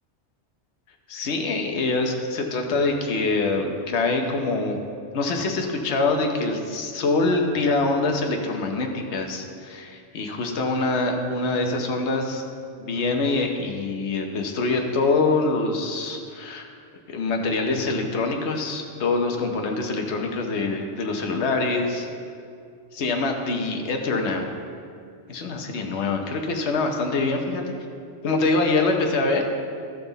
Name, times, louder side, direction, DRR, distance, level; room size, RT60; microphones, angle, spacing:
voice 1, 1.1-4.8 5.1-9.9 10.1-12.4 12.8-16.7 17.1-22.1 22.9-24.5 25.3-27.7 28.2-29.4, left 3 dB, 70° left, 2 dB, 1.2 m, -24 dB
14.0 x 5.9 x 4.0 m, 2.3 s
omnidirectional pair, 1.2 m